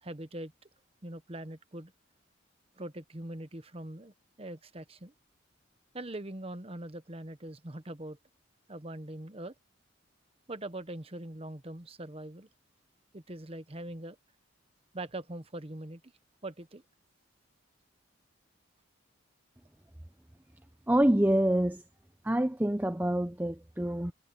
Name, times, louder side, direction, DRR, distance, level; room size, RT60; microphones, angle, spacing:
voice 1, 0.0-0.5 1.0-1.9 2.8-5.1 5.9-8.2 8.7-9.5 10.5-12.5 13.1-14.2 14.9-16.1 16.4-16.8, right 1 dB, 30° right, 1.1 m, -42 dB
voice 2, 20.9-21.8 22.2-24.1, right 1 dB, 10° right, 0.6 m, -26 dB
head